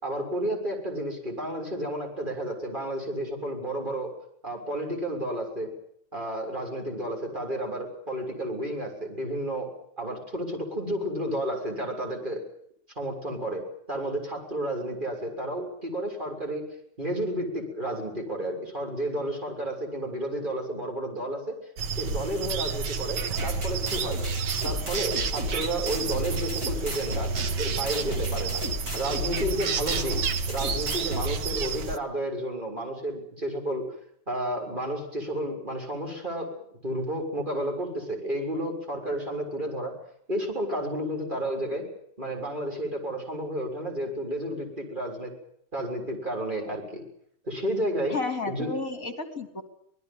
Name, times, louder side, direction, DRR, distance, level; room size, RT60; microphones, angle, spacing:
voice 1, 0.0-4.1 4.4-5.7 6.1-12.4 13.0-16.7 17.0-21.6 22.0-24.2 24.6-28.6 28.9-30.2 30.5-33.9 34.3-39.9 40.3-41.9 42.2-45.3 45.7-47.0 47.4-48.2 48.5-48.8, right 1 dB, 25° right, 2 dB, 7.0 m, -31 dB
sound 1, 21.8-32.0, right 6 dB, 90° right, 1.9 m, -31 dB
sound 2, 23.4-31.4, right 1 dB, 60° right, 6.5 m, -33 dB
voice 2, 48.1-49.6, left 3 dB, 50° left, 8 dB, 3.4 m, -32 dB
26.0 x 20.0 x 7.4 m, 0.70 s
omnidirectional pair, 1.8 m